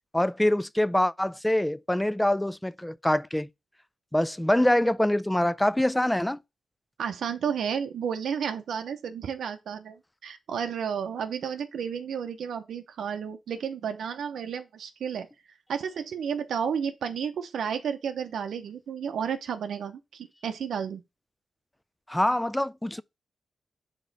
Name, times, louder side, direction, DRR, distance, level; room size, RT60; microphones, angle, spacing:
voice 1, 0.1-3.5 4.1-6.4 22.1-23.0, left 1 dB, 10° left, 0.3 m, -24 dB
voice 2, 7.0-15.3 15.7-21.0, right 7 dB, 85° right, 0.7 m, -32 dB
5.1 x 3.7 x 5.3 m
cardioid pair, 90°, 0 cm